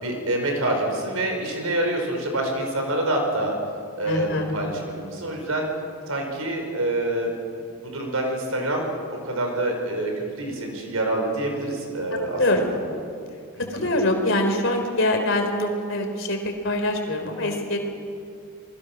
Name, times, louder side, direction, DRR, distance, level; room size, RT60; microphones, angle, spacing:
voice 1, 0.0-3.6 4.0-5.7 6.1-7.3 7.8-8.9 9.2-12.4 13.6-13.9, right 1 dB, 85° right, 2 dB, 5.6 m, -26 dB
voice 2, 4.0-4.5 12.4-12.7 13.7-17.8, left 1 dB, 60° left, 4 dB, 3.8 m, -24 dB
28.0 x 20.5 x 6.3 m, 2.3 s
head